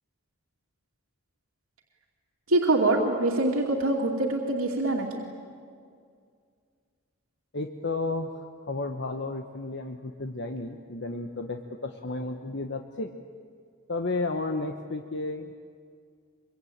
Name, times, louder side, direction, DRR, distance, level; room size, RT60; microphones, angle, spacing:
voice 1, 2.5-5.2, right 2 dB, 75° right, -1 dB, 2.6 m, -24 dB
voice 2, 7.5-13.1 13.9-15.6, left 2 dB, 55° left, 5 dB, 1.1 m, -33 dB
24.0 x 23.5 x 8.8 m, 2.2 s
head